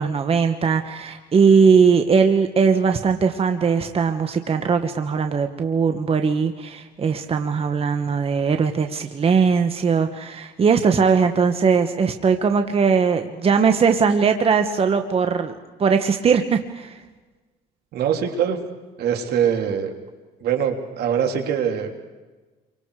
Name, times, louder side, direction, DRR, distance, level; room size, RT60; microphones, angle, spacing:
voice 1, 0.0-17.0, right 5 dB, 35° right, 7 dB, 1.4 m, -19 dB
voice 2, 17.9-18.6 19.0-19.9 20.4-22.0, right 8 dB, 70° right, 4 dB, 3.2 m, -23 dB
29.5 x 24.5 x 4.9 m, 1.3 s
cardioid pair, 110°, 17 cm